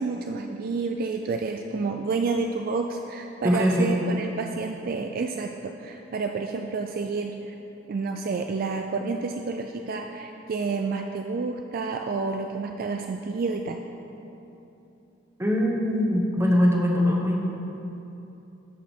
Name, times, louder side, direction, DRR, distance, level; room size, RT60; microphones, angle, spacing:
voice 1, 0.0-7.5 7.9-13.8, right 4 dB, 45° right, 4 dB, 0.4 m, -29 dB
voice 2, 3.4-3.9 15.4-17.4, equal, 15° right, -1 dB, 1.0 m, -22 dB
13.5 x 5.1 x 4.4 m, 2.9 s
head